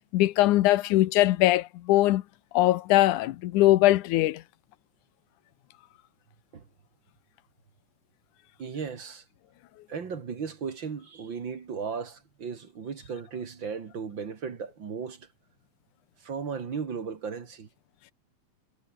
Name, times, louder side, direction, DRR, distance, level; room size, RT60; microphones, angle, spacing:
voice 1, 0.1-2.2 2.5-4.4, left 16 dB, 85° left, 2.4 m, -21 dB
voice 2, 8.6-9.2 9.9-15.3 16.2-17.7, right 6 dB, 40° right, 2.5 m, -36 dB
omnidirectional pair, 3.5 m